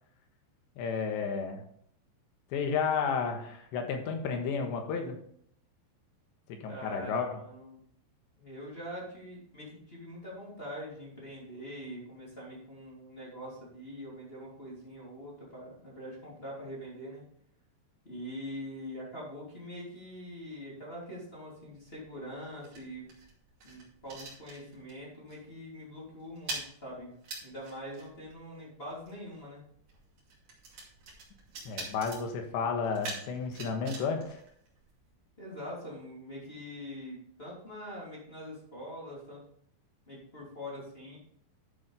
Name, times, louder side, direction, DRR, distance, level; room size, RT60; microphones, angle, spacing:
voice 1, 0.8-1.6 2.5-5.2 6.5-7.3 31.7-34.4, left 5 dB, 75° left, 4 dB, 3.5 m, -32 dB
voice 2, 6.7-7.8 8.4-17.2 18.0-23.0 23.6-27.1 27.4-29.6 35.4-39.5 40.1-41.2, equal, 15° left, -6 dB, 2.6 m, -43 dB
sound 1, 21.7-25.0 25.3-25.6 25.8-35.2, right 3 dB, 50° right, 3.5 m, -45 dB
11.5 x 7.1 x 3.4 m, 0.65 s
omnidirectional pair, 5.3 m